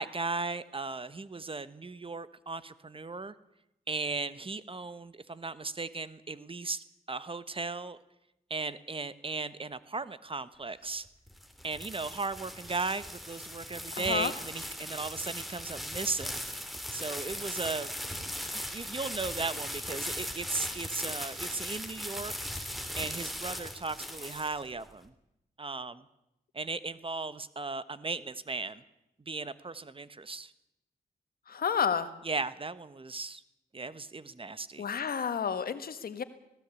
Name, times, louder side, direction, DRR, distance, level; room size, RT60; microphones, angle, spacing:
voice 1, 0.0-3.3 3.9-8.0 8.5-11.1 11.6-16.4 16.9-17.9 18.7-22.5 22.9-25.1 25.6-26.0 26.5-28.8 29.3-30.5 32.2-33.4 33.7-34.8, right 3 dB, 35° right, 14 dB, 1.2 m, -36 dB
sound 1, 11.1-24.9, equal, ahead, 3.1 m, -39 dB
voice 2, 13.9-14.3 31.5-32.1 34.8-36.2, left 7 dB, 75° left, 11 dB, 1.5 m, -30 dB
18.5 x 16.5 x 8.4 m, 0.86 s
cardioid pair, 60°, 16 cm